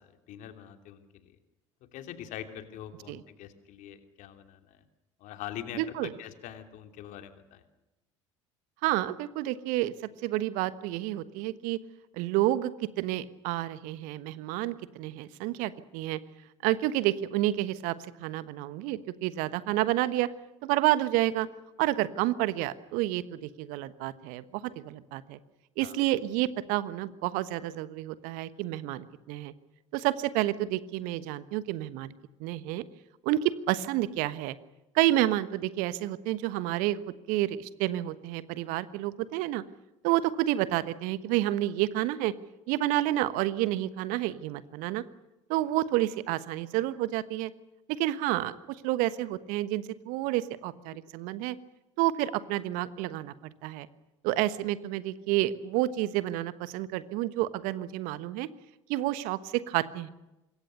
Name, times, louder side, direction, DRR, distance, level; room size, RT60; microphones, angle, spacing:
voice 1, 0.0-1.4 1.9-4.8 5.2-7.6 25.8-26.0, left 10 dB, 55° left, 7 dB, 2.9 m, -43 dB
voice 2, 5.8-6.1 8.8-9.9 10.2-11.8 12.2-12.7 13.0-16.2 16.6-20.3 20.6-21.5 21.8-25.4 25.8-29.5 29.9-32.1 32.4-32.8 33.2-34.5 34.9-37.0 37.3-39.6 40.0-42.3 42.7-45.0 45.5-47.5 48.0-51.6 52.0-53.3 53.6-53.9 54.2-58.5 58.9-60.1, right 15 dB, 60° right, 15 dB, 1.3 m, -29 dB
26.0 x 22.0 x 6.7 m, 0.97 s
figure-of-eight pair, 65°, 16 cm